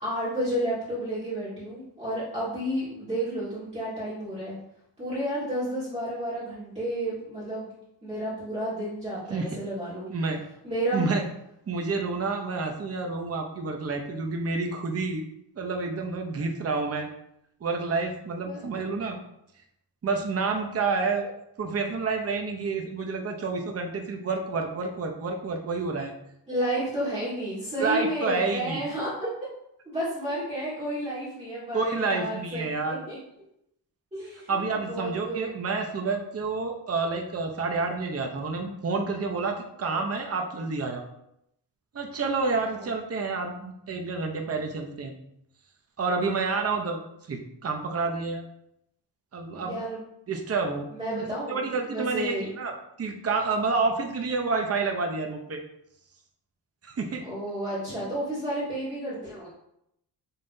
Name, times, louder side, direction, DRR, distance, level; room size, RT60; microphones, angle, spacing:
voice 1, 0.0-4.6 5.0-7.7 8.0-10.1 10.6-11.1 18.4-18.7 26.5-29.1 29.8-32.6 32.9-33.2 34.1-34.6 34.9-35.5 42.7-42.9 49.5-50.0 50.9-52.5 57.2-59.5, right 1 dB, 15° right, -11 dB, 1.7 m, -31 dB
voice 2, 10.1-10.4 10.9-11.2 11.7-15.2 15.6-17.1 17.6-19.2 20.0-21.3 21.6-26.1 27.8-28.8 31.7-33.0 34.5-41.0 41.9-45.1 46.0-47.0 47.3-48.4 49.3-49.8 50.3-50.9 51.1-51.2 51.5-52.7 53.0-55.6 56.8-57.2, right 4 dB, 35° right, 2 dB, 0.7 m, -29 dB
5.6 x 3.2 x 2.6 m, 0.78 s
wide cardioid pair, 110°, 43 cm